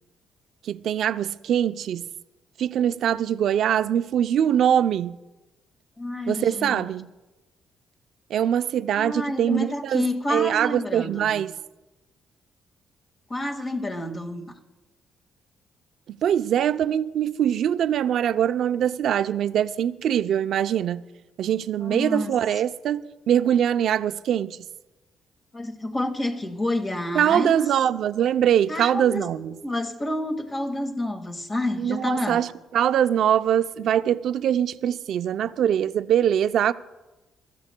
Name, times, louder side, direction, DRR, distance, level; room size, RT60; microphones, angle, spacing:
voice 1, 0.6-2.1 2.6-5.2 6.3-7.1 8.3-11.5 16.1-21.0 21.4-24.7 27.1-29.6 31.8-36.7, right 9 dB, 70° right, 0.5 m, -23 dB
voice 2, 6.0-6.9 9.0-11.3 13.3-14.5 21.8-22.3 25.5-27.6 28.7-29.2 29.6-32.4, left 1 dB, 30° left, 1.8 m, -29 dB
26.0 x 14.0 x 2.2 m
cardioid pair, 90°, 0 cm